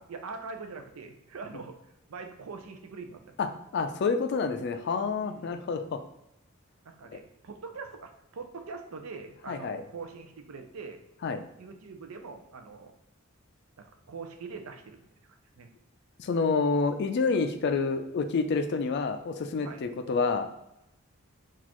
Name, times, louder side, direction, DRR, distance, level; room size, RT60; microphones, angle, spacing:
voice 1, 0.0-1.8 2.1-3.4 5.2-5.5 6.9-11.0 11.6-12.9 13.8-15.1 15.6-15.7 19.6-19.9, right 4 dB, 85° right, 6 dB, 0.5 m, -43 dB
voice 2, 3.7-6.0 7.1-7.2 9.5-9.8 11.2-11.4 16.2-20.5, left 4 dB, 55° left, 9 dB, 0.3 m, -28 dB
4.1 x 2.4 x 2.9 m, 0.86 s
head